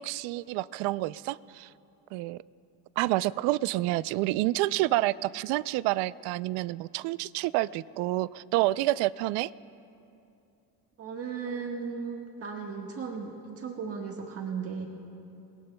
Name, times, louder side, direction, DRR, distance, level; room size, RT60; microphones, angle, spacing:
voice 1, 0.0-1.7 2.1-2.4 3.0-9.5, right 17 dB, 75° right, 18 dB, 0.5 m, -28 dB
voice 2, 11.0-14.9, right 5 dB, 35° right, 0 dB, 1.4 m, -36 dB
29.0 x 22.0 x 2.2 m, 2.7 s
cardioid pair, 135°, 41 cm